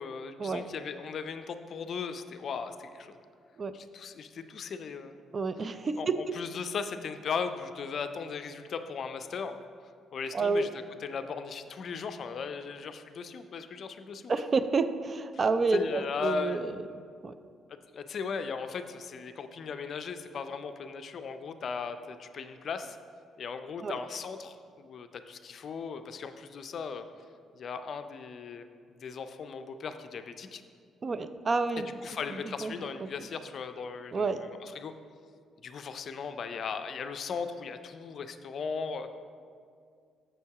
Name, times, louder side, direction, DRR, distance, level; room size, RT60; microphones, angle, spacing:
voice 1, 0.0-3.1 3.7-5.1 5.9-9.6 10.1-14.3 15.7-16.7 17.9-23.0 23.4-27.1 27.5-28.7 29.0-30.6 32.0-34.9 35.6-39.1, left 5 dB, 55° left, 9 dB, 0.4 m, -37 dB
voice 2, 5.3-6.2 10.3-10.7 14.3-16.8 17.2-17.3 23.8-24.0 31.0-31.9 32.3-33.1 34.1-34.5, right 4 dB, 40° right, 12 dB, 0.4 m, -29 dB
7.2 x 5.7 x 4.7 m, 2.2 s
cardioid pair, 90°, 0 cm